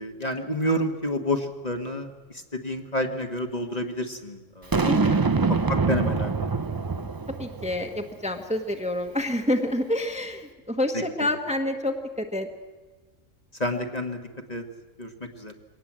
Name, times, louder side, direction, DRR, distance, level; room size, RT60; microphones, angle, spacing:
voice 1, 0.0-4.8 5.7-6.5 10.9-11.3 13.6-14.6 15.0-15.5, left 1 dB, 35° left, 4 dB, 1.6 m, -29 dB
Boom, 4.7-8.0, right 4 dB, 30° right, 0.4 m, -24 dB
voice 2, 4.8-5.2 7.4-12.5, left 1 dB, 5° right, 4 dB, 1.3 m, -28 dB
23.0 x 18.5 x 7.5 m, 1.3 s
omnidirectional pair, 1.3 m